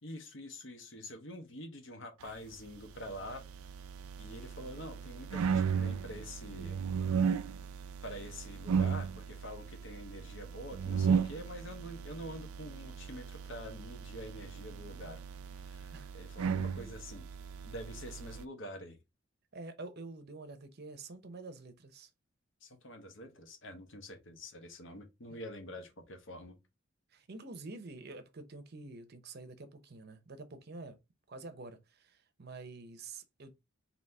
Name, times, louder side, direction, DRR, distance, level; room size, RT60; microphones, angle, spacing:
voice 1, 0.0-3.4 4.2-6.8 8.0-15.2 15.5-17.3 17.6-19.0 22.6-26.6, equal, 60° left, 1.0 m, -46 dB
sound 1, 3.0-18.4, right 6 dB, 85° right, 0.4 m, -36 dB
voice 2, 19.5-22.1 25.3-25.4 27.1-31.0 31.3-33.5, right 3 dB, 50° right, 0.7 m, -47 dB
4.1 x 2.8 x 3.3 m
head